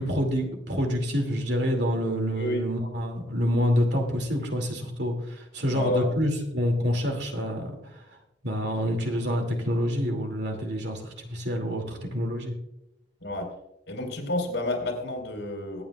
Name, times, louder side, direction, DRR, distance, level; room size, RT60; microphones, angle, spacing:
voice 1, 0.0-7.7 8.4-12.5, equal, 65° right, 2 dB, 2.5 m, -27 dB
voice 2, 2.4-2.7 5.7-6.1 13.2-13.5 13.9-15.8, left 1 dB, 75° left, 1 dB, 4.1 m, -29 dB
23.5 x 9.3 x 2.4 m, 0.85 s
head